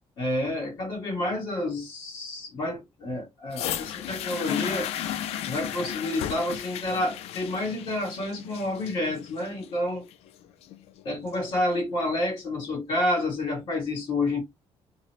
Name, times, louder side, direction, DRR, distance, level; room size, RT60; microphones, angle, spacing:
voice 1, 0.2-4.9 5.5-10.1 11.0-14.4, left 1 dB, 50° left, 1.2 m, -29 dB
sound 1, 3.5-11.5 12.3-12.4, left 11 dB, 80° left, 0.4 m, -35 dB
2.9 x 2.0 x 2.9 m
cardioid pair, 165°, 10 cm